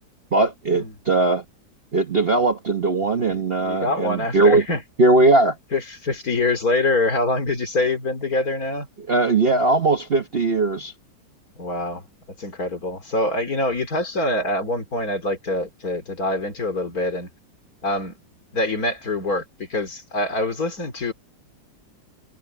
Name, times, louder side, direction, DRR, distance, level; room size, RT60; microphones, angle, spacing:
voice 1, 0.3-1.4 1.9-4.6 5.0-5.6 9.0-10.9, right 2 dB, 40° right, 1.1 m, -19 dB
voice 2, 3.1-4.8 5.7-8.9 11.6-12.0 12.4-17.3 17.8-18.2 18.5-21.1, left 2 dB, 50° left, 3.7 m, -25 dB
omnidirectional pair, 2.0 m